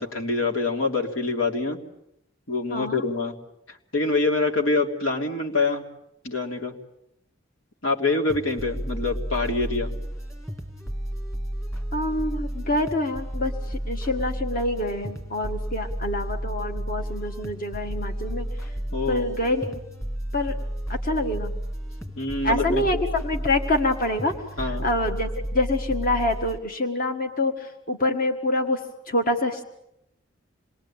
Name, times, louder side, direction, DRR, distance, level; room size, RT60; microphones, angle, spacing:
voice 1, 0.0-1.8 2.5-3.3 3.7-5.8 6.2-6.7 7.8-9.9 18.9-19.3 22.2-23.0 24.6-24.9, left 3 dB, 85° left, 2 dB, 3.4 m, -25 dB
voice 2, 2.7-3.0 11.9-18.5 19.1-19.8 20.3-20.6 20.9-21.5 22.4-24.3 24.7-28.8 29.1-29.6, left 1 dB, 45° left, 5 dB, 1.7 m, -26 dB
sound 1, 8.3-26.6, right 1 dB, 15° left, 2.7 m, -32 dB
27.5 x 21.5 x 8.9 m, 0.82 s
head